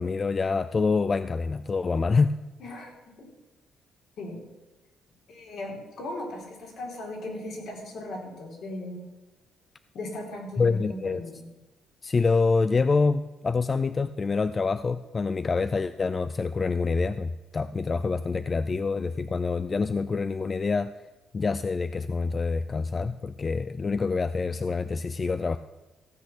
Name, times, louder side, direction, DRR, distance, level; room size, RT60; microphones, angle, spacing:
voice 1, 0.0-2.4 10.6-11.2 12.0-20.9 21.3-25.6, left 4 dB, 35° left, 12 dB, 0.4 m, -26 dB
voice 2, 2.6-3.3 4.2-4.5 5.3-9.0 9.9-11.5, left 1 dB, 70° left, -1 dB, 4.4 m, -38 dB
15.5 x 8.3 x 6.2 m, 1.1 s
cardioid pair, 90°, 0 cm